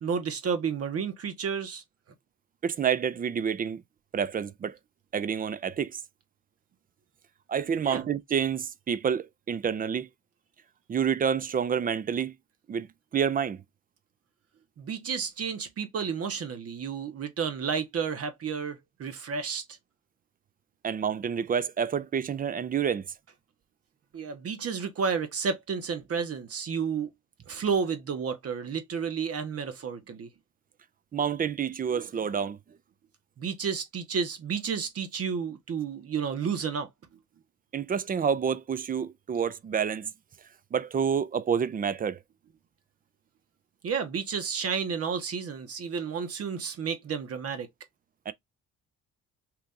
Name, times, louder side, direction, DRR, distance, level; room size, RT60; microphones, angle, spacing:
voice 1, 0.0-1.8 7.8-8.0 14.8-19.6 24.1-27.1 27.5-30.3 33.4-36.9 43.8-47.7, right 6 dB, 50° right, 1.0 m, -31 dB
voice 2, 2.6-3.8 4.1-4.8 5.1-6.0 7.5-10.1 10.9-12.3 12.7-12.9 13.1-13.6 20.8-23.1 31.1-32.6 37.7-40.1 40.7-42.2 48.3-48.4, right 7 dB, 30° right, 0.4 m, -28 dB
2.9 x 2.5 x 3.6 m
cardioid pair, 90°, 30 cm